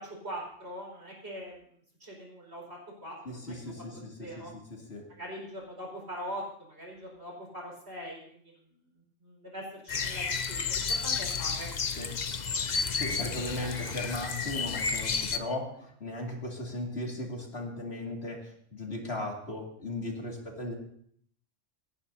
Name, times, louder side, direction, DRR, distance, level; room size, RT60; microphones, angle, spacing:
voice 1, 0.0-1.6 2.0-4.5 5.1-6.4 6.7-8.4 9.2-11.7 13.4-14.0, equal, 55° right, -2 dB, 5.3 m, -42 dB
voice 2, 3.2-5.1 12.0-12.2 12.6-20.7, left 1 dB, 55° left, 0 dB, 2.7 m, -37 dB
sound 1, 9.9-15.4, left 5 dB, 40° left, 0.8 m, -31 dB
28.5 x 11.0 x 2.8 m, 0.62 s
omnidirectional pair, 1.3 m